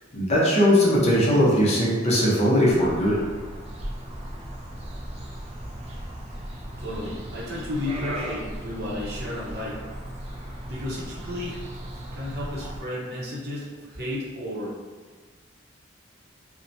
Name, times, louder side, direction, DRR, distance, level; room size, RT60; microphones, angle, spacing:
voice 1, 0.1-3.2, equal, 35° left, -5 dB, 0.6 m, -19 dB
sound 1, 2.7-12.8, right 1 dB, 35° right, 0.4 m, -37 dB
voice 2, 6.8-9.8 10.7-11.6 12.1-14.8, left 1 dB, 55° right, -6 dB, 0.7 m, -33 dB
2.7 x 2.1 x 2.6 m, 1.4 s
head